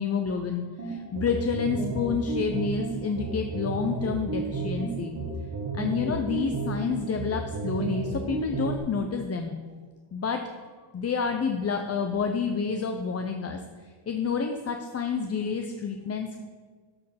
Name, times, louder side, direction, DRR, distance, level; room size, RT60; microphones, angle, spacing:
voice 1, 0.0-5.1 5.7-9.6 10.1-10.4 10.9-16.4, left 5 dB, 30° left, 5 dB, 0.5 m, -29 dB
sound 1, 0.8-8.8, right 3 dB, 45° right, 1.4 m, -32 dB
13.0 x 4.5 x 5.7 m, 1.5 s
cardioid pair, 135°, 50 cm